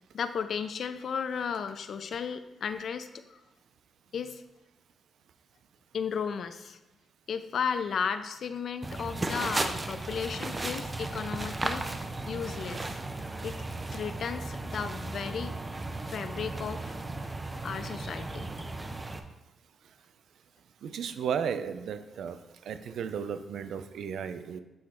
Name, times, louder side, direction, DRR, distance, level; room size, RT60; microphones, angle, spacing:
voice 1, 0.1-3.4 4.1-4.4 5.9-6.8 7.3-13.0 13.4-13.6 13.9-15.5 16.1-17.0 17.6-18.5, left 6 dB, 60° left, 11 dB, 0.4 m, -34 dB
sound 1, 8.8-19.2, right 2 dB, 20° right, 0.5 m, -35 dB
voice 2, 20.8-22.4 22.6-24.6, right 7 dB, 80° right, 10 dB, 0.4 m, -34 dB
7.8 x 3.1 x 4.3 m, 0.96 s
cardioid pair, 115°, 0 cm